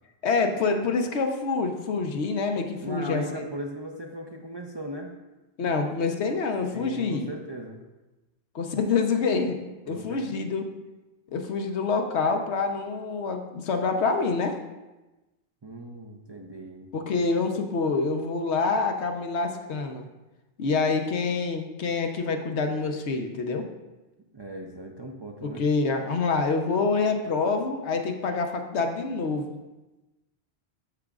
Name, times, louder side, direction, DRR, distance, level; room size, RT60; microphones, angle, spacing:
voice 1, 0.2-3.4 5.6-7.3 8.5-9.6 9.9-10.7 11.3-14.6 16.9-20.1 20.6-23.6 25.4-29.6, left 4 dB, 85° left, 5 dB, 1.1 m, -26 dB
voice 2, 2.8-5.1 6.7-7.8 9.8-10.2 15.6-16.9 24.3-25.6, right 1 dB, 35° right, 1 dB, 0.5 m, -38 dB
13.5 x 4.9 x 2.4 m, 1.1 s
omnidirectional pair, 1.1 m